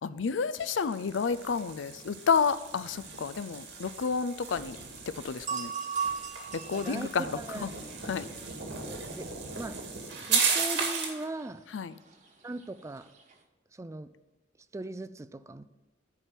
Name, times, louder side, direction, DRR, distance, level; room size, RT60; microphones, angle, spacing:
voice 1, 0.0-4.8 5.1-5.7 6.5-7.7 8.0-8.3 11.7-12.0, left 5 dB, 90° left, 16 dB, 0.5 m, -30 dB
sound 1, 0.5-11.2, right 5 dB, 75° right, 2.1 m, -35 dB
sound 2, 2.5-13.4, right 6 dB, 40° right, 1.2 m, -42 dB
voice 2, 6.7-7.1 7.3-7.6 8.9-9.3 9.6-9.8 10.3-11.6 12.4-13.1 13.7-14.1 14.7-15.6, right 2 dB, 15° right, 14 dB, 0.3 m, -39 dB
9.8 x 4.5 x 7.5 m, 1.2 s
head